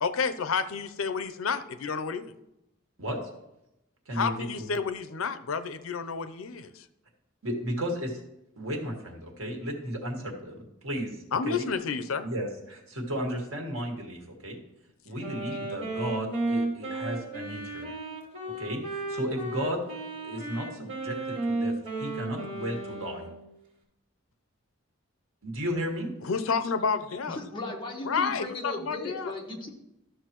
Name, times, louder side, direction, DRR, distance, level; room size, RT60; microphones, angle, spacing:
voice 1, 0.0-2.3 4.1-6.8 11.3-12.3 26.2-27.4 28.0-29.3, left 5 dB, 80° left, 11 dB, 0.6 m, -30 dB
voice 2, 4.1-4.7 7.4-8.2 8.6-11.2 11.4-11.6 12.2-14.6 15.1-17.9 18.6-19.8 20.2-21.7 22.0-23.3 25.4-26.1, equal, 85° right, 1 dB, 1.7 m, -34 dB
Wind instrument woodwind instrument, 15.2-23.4, right 2 dB, 65° right, 2.6 m, -34 dB
voice 3, 27.3-29.7, left 2 dB, 25° left, 0 dB, 1.4 m, -36 dB
12.5 x 6.6 x 3.0 m, 0.87 s
head